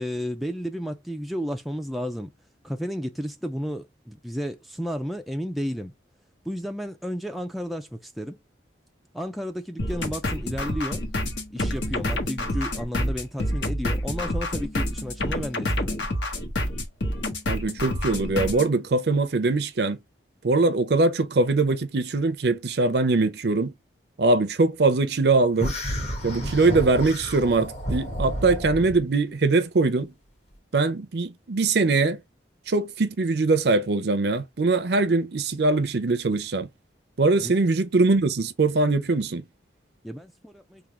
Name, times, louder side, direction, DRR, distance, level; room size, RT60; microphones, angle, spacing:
voice 1, 0.0-2.3 2.6-5.9 6.5-8.4 9.1-11.0 11.5-16.0 37.4-37.5 40.0-40.8, equal, ahead, 0.3 m, -32 dB
sound 1, 9.8-18.7, left 1 dB, 85° left, 1.2 m, -28 dB
voice 2, 17.5-20.0 20.4-23.7 24.2-25.8 26.2-30.1 30.7-32.2 32.7-36.7 37.2-39.4, right 3 dB, 60° right, 0.5 m, -22 dB
sound 2, 25.6-29.0, equal, 35° left, 1.2 m, -31 dB
3.6 x 2.3 x 4.3 m
head